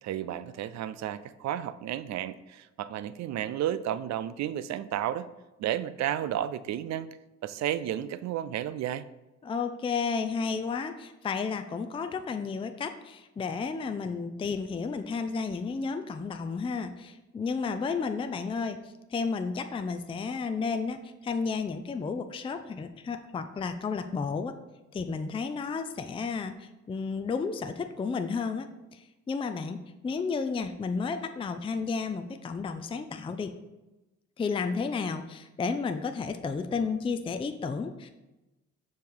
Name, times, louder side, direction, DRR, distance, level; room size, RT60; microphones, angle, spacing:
voice 1, 0.0-5.3 5.6-7.1 7.4-9.0, right 11 dB, 65° right, 15 dB, 0.4 m, -32 dB
voice 2, 9.4-24.5 24.9-28.7 28.9-33.5 34.4-38.1, left 5 dB, 20° left, 8 dB, 0.4 m, -32 dB
6.7 x 3.2 x 5.4 m, 1.0 s
cardioid pair, 90°, 30 cm